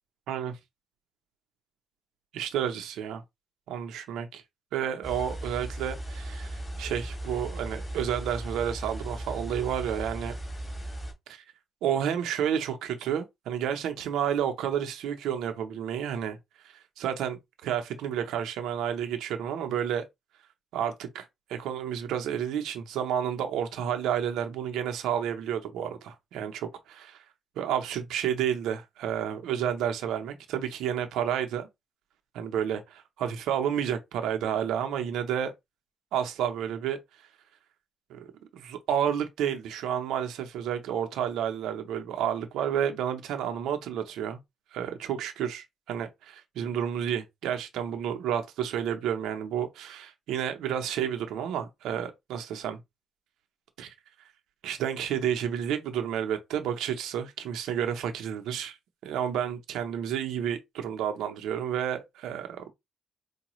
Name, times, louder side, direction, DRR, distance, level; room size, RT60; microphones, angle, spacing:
voice 1, 0.3-0.6 2.3-3.2 3.7-4.4 4.7-10.4 11.3-11.4 11.8-16.4 16.6-20.0 20.7-27.2 27.6-31.7 32.3-35.5 36.1-37.0 38.1-38.3 38.5-44.4 44.7-52.8 53.8-53.9 54.6-58.8 59.0-62.7, right 9 dB, 85° right, 0.7 m, -31 dB
sound 1, 5.0-11.1, right 1 dB, 10° left, 2.3 m, -37 dB
4.7 x 2.3 x 3.0 m
cardioid pair, 90°, 0 cm